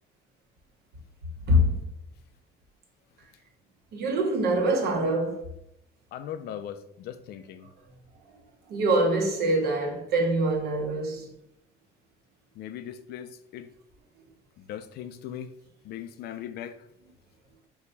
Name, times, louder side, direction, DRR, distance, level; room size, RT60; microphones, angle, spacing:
voice 1, 3.9-5.4 8.7-11.3, right 1 dB, 70° right, 1.2 m, -24 dB
voice 2, 6.1-7.7 12.6-13.7 14.7-15.5 15.8-16.8, left 10 dB, 70° left, 0.5 m, -39 dB
4.7 x 2.3 x 4.0 m
cardioid pair, 110°, 17 cm